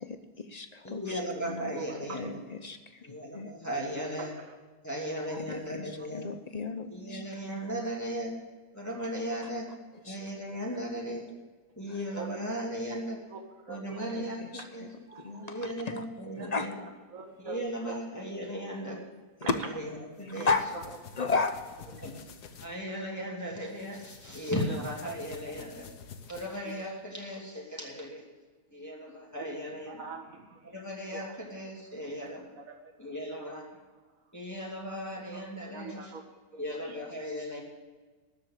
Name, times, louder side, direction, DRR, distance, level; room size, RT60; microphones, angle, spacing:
voice 1, 0.0-1.8 2.1-3.5 5.4-7.2 9.9-10.2 11.9-12.0 14.0-16.0 16.4-16.7 19.1-19.2 19.5-19.6 19.8-19.9 20.2-20.7 21.1-22.0, left 4 dB, 50° left, 9 dB, 0.4 m, -34 dB
voice 2, 0.8-2.4 3.0-4.3 4.8-6.3 6.9-8.3 8.7-9.6 10.1-11.3 11.8-13.2 13.7-14.9 15.4-16.7 17.4-19.0 19.4-19.5 19.8-19.9 20.2-20.5 22.0-22.2 22.6-25.9 26.3-28.2 28.7-30.0 30.6-32.4 33.0-33.7 34.3-36.1 36.5-37.6, equal, 10° left, -3 dB, 2.6 m, -36 dB
voice 3, 1.4-2.0 4.2-4.5 5.3-5.4 9.0-9.1 12.2-12.4 13.3-14.1 14.6-14.7 15.1-15.5 16.4-16.5 17.1-18.0 18.7-18.8 19.4-19.5 20.3-20.5 24.7-25.1 29.4-29.6 29.9-30.8 31.1-31.2 32.6-32.9 33.4-33.6 35.7-36.2 36.5-37.0, right 4 dB, 55° right, 4 dB, 2.1 m, -44 dB
sound 1, 20.2-22.7 23.7-26.9, left 6 dB, 80° left, 1.6 m, -49 dB
13.0 x 7.7 x 8.5 m, 1.3 s
omnidirectional pair, 1.7 m